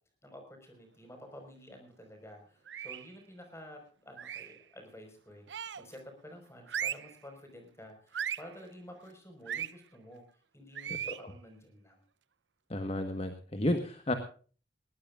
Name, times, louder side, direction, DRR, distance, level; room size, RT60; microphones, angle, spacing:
voice 1, 0.2-10.2 10.5-12.0, equal, 15° left, 5 dB, 5.1 m, -51 dB
sound 1, 2.7-3.1 4.2-4.6 5.5-6.0 6.7-7.2 8.1-8.5 9.5-9.7 10.8-11.2, right 9 dB, 85° right, 0.7 m, -37 dB
voice 2, 12.7-14.1, left 1 dB, 35° left, 7 dB, 1.4 m, -32 dB
20.5 x 18.5 x 2.5 m, 0.40 s
head